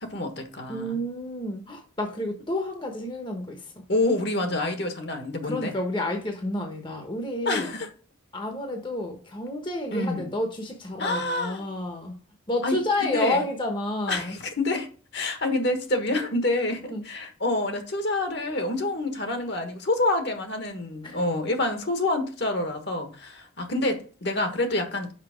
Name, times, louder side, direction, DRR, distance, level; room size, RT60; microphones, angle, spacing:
voice 1, 0.0-1.0 3.9-5.7 7.4-7.9 9.9-10.3 11.0-11.6 12.6-13.4 14.1-25.1, left 2 dB, 55° left, 1.4 m, -27 dB
voice 2, 0.7-3.7 5.4-7.7 8.3-12.2 12.5-14.4 16.9-17.0 21.0-21.2, left 1 dB, 25° left, 0.9 m, -30 dB
5.9 x 5.3 x 5.0 m
head